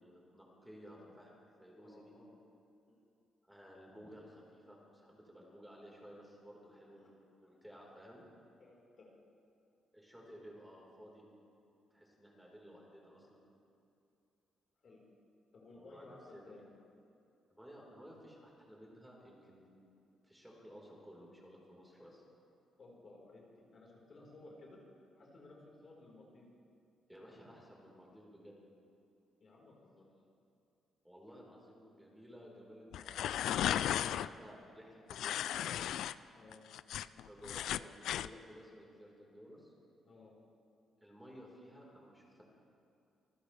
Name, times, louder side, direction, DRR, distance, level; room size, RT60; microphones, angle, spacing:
voice 1, 0.0-2.1 3.4-8.2 9.9-11.2 11.9-13.4 15.7-16.5 17.5-19.7 20.2-22.2 27.1-28.6 31.0-36.0 37.3-39.7 41.0-42.4, equal, 5° right, -3 dB, 4.3 m, -55 dB
voice 2, 1.8-2.3 2.9-3.0 7.0-7.1 8.6-9.1 14.8-15.0 15.5-16.6 22.8-23.4 23.7-24.8 25.1-26.4 29.4-30.1 36.3-36.6 40.0-40.3, left 2 dB, 50° left, -3 dB, 4.3 m, -57 dB
sound 1, 32.9-34.3 35.1-36.1 36.5-38.3, left 11 dB, 80° left, 0.3 m, -35 dB
26.0 x 14.5 x 3.4 m, 2.7 s
cardioid pair, 90°, 0 cm